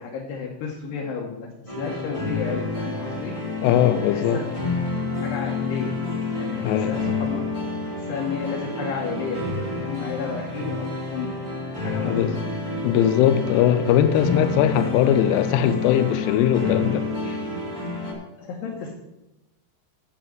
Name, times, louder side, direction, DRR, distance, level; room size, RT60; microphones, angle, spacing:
voice 1, 0.0-3.4 4.1-4.4 5.0-6.0 6.4-7.7 8.0-11.4 11.8-12.4 18.4-18.9, left 6 dB, 70° left, 2.7 m, -32 dB
sound 1, 1.7-18.1, left 3 dB, 30° right, 0.6 m, -29 dB
voice 2, 3.6-4.4 6.6-6.9 12.1-12.3 12.8-17.4, left 10 dB, 90° left, 3.1 m, -20 dB
9.2 x 5.5 x 7.7 m
omnidirectional pair, 5.6 m